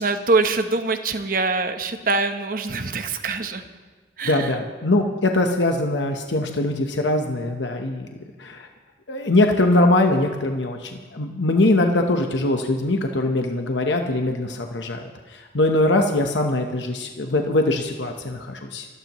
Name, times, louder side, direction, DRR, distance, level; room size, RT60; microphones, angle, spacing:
voice 1, 0.0-3.7 4.2-4.6, right 3 dB, 50° right, 8 dB, 0.9 m, -24 dB
voice 2, 4.3-8.1 8.4-8.7 9.1-18.9, left 2 dB, 85° left, 4 dB, 1.0 m, -22 dB
27.0 x 12.5 x 3.1 m, 1.4 s
head